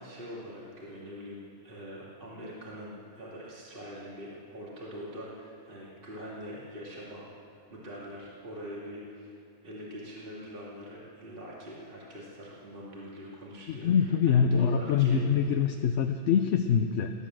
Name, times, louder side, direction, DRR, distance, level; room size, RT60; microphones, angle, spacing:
voice 1, 0.0-7.3 7.7-9.3 9.6-15.5, equal, 35° right, -6 dB, 2.6 m, -43 dB
voice 2, 13.7-17.1, left 7 dB, 60° left, 5 dB, 1.0 m, -24 dB
18.0 x 10.5 x 7.6 m, 2.4 s
omnidirectional pair, 1.5 m